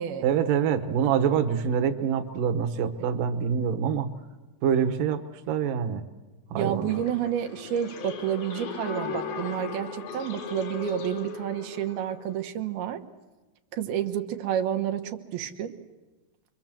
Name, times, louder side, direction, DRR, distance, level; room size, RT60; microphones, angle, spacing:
voice 1, 0.2-4.1 4.6-6.0 6.5-7.0, right 7 dB, 70° right, 7 dB, 2.6 m, -25 dB
voice 2, 6.5-13.0 13.7-15.8, right 10 dB, 90° right, 6 dB, 3.1 m, -30 dB
sound 1, 6.9-12.2, left 6 dB, 75° left, 3.8 m, -37 dB
28.0 x 23.0 x 7.5 m, 1.2 s
omnidirectional pair, 4.2 m